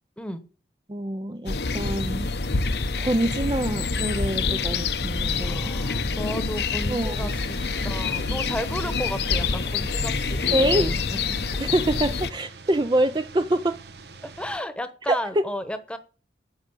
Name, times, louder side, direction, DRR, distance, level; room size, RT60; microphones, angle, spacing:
voice 1, 0.9-2.3 3.0-5.7 6.9-7.3 10.5-11.0 11.6-13.8 15.1-15.4, right 1 dB, 25° right, 0.5 m, -25 dB
sound 1, 1.5-12.3, left 4 dB, 70° left, 0.8 m, -26 dB
voice 2, 5.4-11.5 14.4-16.0, equal, 5° left, 1.1 m, -33 dB
sound 2, 7.1-14.6, right 3 dB, 70° right, 1.1 m, -45 dB
10.0 x 6.5 x 8.1 m
head